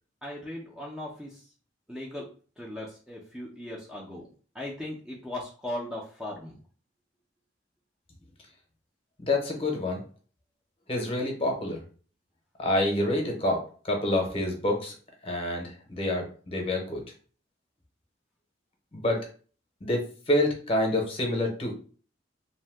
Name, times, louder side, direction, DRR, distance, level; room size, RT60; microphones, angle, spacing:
voice 1, 0.2-1.5 1.9-2.3 2.6-4.3 4.5-6.5, left 1 dB, 5° right, -3 dB, 0.4 m, -38 dB
voice 2, 9.2-10.0 10.9-11.8 12.6-14.9 15.2-17.0 18.9-19.2 19.8-21.7, left 1 dB, 30° left, 1 dB, 0.7 m, -27 dB
2.6 x 2.1 x 3.3 m, 0.40 s
head